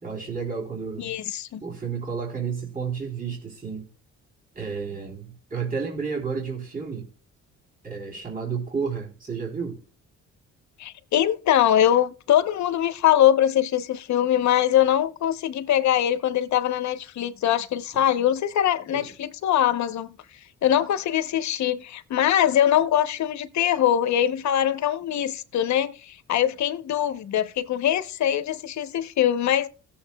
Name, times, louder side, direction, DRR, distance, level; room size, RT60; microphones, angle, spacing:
voice 1, 0.0-1.1 1.6-3.8 4.6-7.1 7.8-9.8 18.9-19.1, right 5 dB, 30° right, 3.6 m, -31 dB
voice 2, 1.0-1.6 10.8-20.1 20.6-29.7, left 11 dB, 65° left, 0.9 m, -22 dB
17.5 x 7.1 x 2.3 m
cardioid pair, 90°, 30 cm